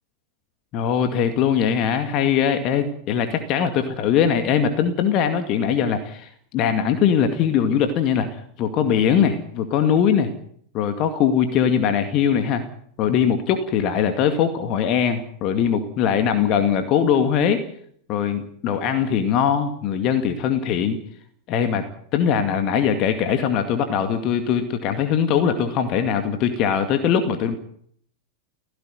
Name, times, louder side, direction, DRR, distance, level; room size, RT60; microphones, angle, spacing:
voice 1, 0.7-10.3 10.7-12.6 13.0-17.6 18.1-21.0 21.5-21.8 22.1-27.6, left 8 dB, 40° left, 7 dB, 2.2 m, -21 dB
17.0 x 16.0 x 9.4 m, 0.64 s
figure-of-eight pair, 90°, 0 cm